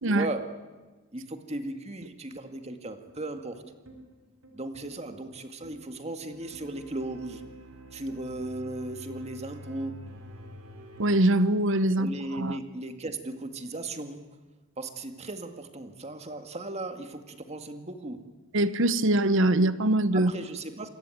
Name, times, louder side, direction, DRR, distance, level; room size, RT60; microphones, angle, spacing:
voice 1, 0.1-0.5 1.1-3.6 4.5-7.4 7.9-10.0 12.0-14.3 14.8-18.2 20.1-20.9, right 2 dB, 30° right, 7 dB, 2.1 m, -36 dB
sound 1, 3.1-11.1, equal, 85° right, 3.7 m, -48 dB
voice 2, 11.0-12.1 12.4-12.6 18.5-20.3, right 1 dB, 65° right, 14 dB, 1.0 m, -23 dB
27.5 x 21.5 x 9.3 m, 1.3 s
head